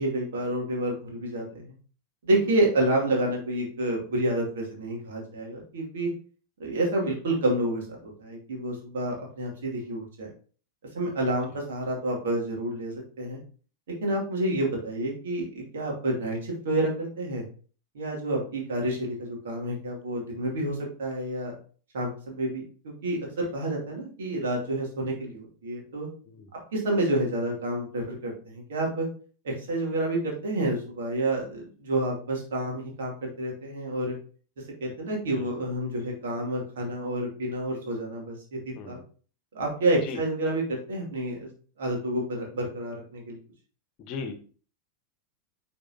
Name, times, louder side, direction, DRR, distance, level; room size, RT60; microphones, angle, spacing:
voice 1, 0.0-1.7 2.2-6.1 6.6-10.3 10.9-13.4 14.0-17.4 17.9-21.5 21.9-26.1 26.7-29.1 29.4-34.2 34.8-39.0 39.5-41.5 41.8-43.4, right 1 dB, 60° right, -1 dB, 2.5 m, -29 dB
voice 2, 44.0-44.3, left 5 dB, 40° left, 7 dB, 1.1 m, -37 dB
8.8 x 4.3 x 2.8 m, 0.41 s
figure-of-eight pair, 90°, 0 cm